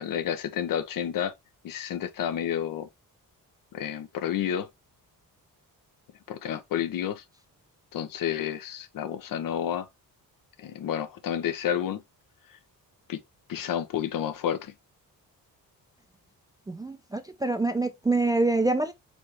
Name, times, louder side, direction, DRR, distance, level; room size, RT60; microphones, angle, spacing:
voice 1, 0.0-1.3 1.6-2.9 3.7-4.7 6.3-7.2 7.9-9.9 10.6-12.0 13.1-13.2 13.5-14.7, left 9 dB, 65° left, 0.8 m, -30 dB
voice 2, 16.7-18.9, right 2 dB, 10° right, 0.3 m, -26 dB
4.2 x 3.2 x 3.3 m
wide cardioid pair, 155°, 35 cm